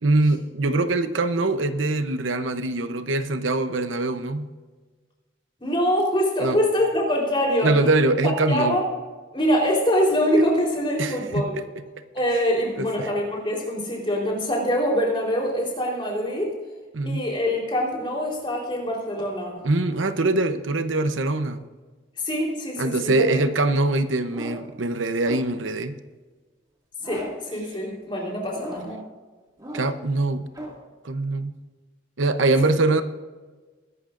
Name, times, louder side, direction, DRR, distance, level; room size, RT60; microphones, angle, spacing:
voice 1, 0.0-4.5 6.4-6.6 7.6-8.8 11.0-11.6 12.3-12.5 12.8-13.1 16.9-17.2 19.6-21.7 22.8-25.9 29.7-30.5 31.0-31.5 32.2-33.0, right 2 dB, 90° right, 10 dB, 0.9 m, -23 dB
voice 2, 5.6-7.7 8.5-8.9 9.3-11.5 12.1-16.6 17.1-19.5 22.2-23.1 27.0-29.0, equal, 25° left, -1 dB, 3.8 m, -24 dB
sound 1, 24.3-24.8 25.2-25.7 27.0-27.6 28.5-29.1 29.6-30.1 30.5-30.9, equal, 20° right, 2.2 m, -38 dB
21.0 x 12.0 x 2.6 m, 1.3 s
head